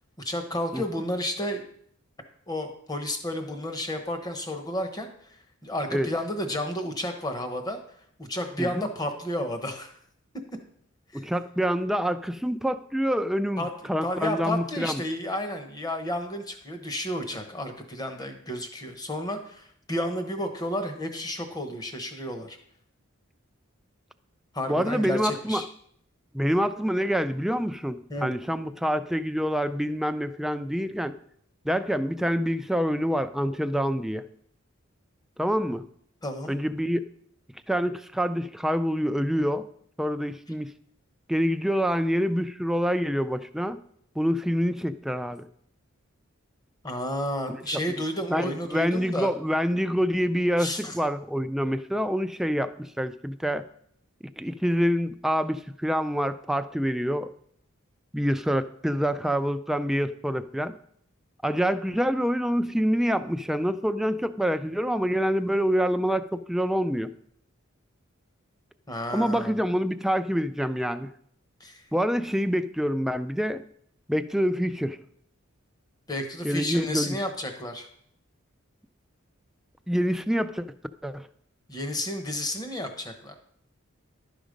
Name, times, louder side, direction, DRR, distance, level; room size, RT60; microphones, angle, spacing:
voice 1, 0.2-1.6 2.5-5.1 5.6-7.8 8.2-9.9 11.1-11.2 13.6-13.7 14.0-22.6 24.5-25.6 28.1-28.3 36.2-36.5 46.8-49.3 50.6-51.0 68.9-69.6 71.6-71.8 76.1-77.9 81.7-83.3, left 1 dB, 20° left, 6 dB, 1.0 m, -31 dB
voice 2, 8.6-8.9 11.1-13.6 13.9-15.0 24.7-25.7 26.3-31.1 31.6-34.3 35.4-35.8 36.5-37.0 37.7-39.7 40.0-40.7 41.3-43.8 44.2-45.5 47.5-47.6 48.3-53.6 54.4-57.3 58.1-60.7 61.4-67.1 69.1-71.1 71.9-73.6 74.1-75.0 76.4-77.2 79.9-80.7 81.0-81.3, equal, ahead, 9 dB, 0.3 m, -26 dB
11.5 x 5.0 x 5.2 m, 0.67 s
head